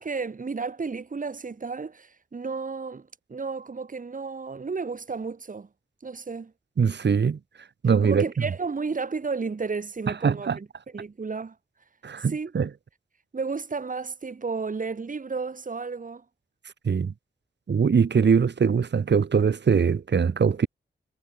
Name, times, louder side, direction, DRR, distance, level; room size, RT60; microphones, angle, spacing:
voice 1, 0.0-5.7 6.0-6.5 8.0-10.7 10.9-11.5 12.3-12.5 13.3-16.2, right 4 dB, 45° right, 4.8 m, -32 dB
voice 2, 6.8-7.4 7.8-8.2 10.1-10.6 12.0-12.7 16.8-17.1 17.7-20.7, right 6 dB, 65° right, 2.8 m, -22 dB
wide cardioid pair, 160°, 19 cm